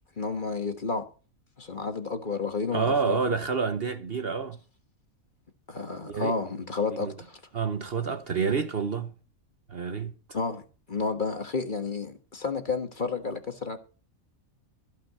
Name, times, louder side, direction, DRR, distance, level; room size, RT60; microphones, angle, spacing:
voice 1, 0.2-1.0 1.6-3.2 5.7-7.4 10.3-10.6 10.9-13.8, left 4 dB, 35° left, 1.5 m, -31 dB
voice 2, 2.7-4.6 6.1-6.3 6.9-7.1 7.5-9.1 9.7-10.2, right 5 dB, 45° right, 1.1 m, -28 dB
15.5 x 5.6 x 8.0 m
omnidirectional pair, 1.5 m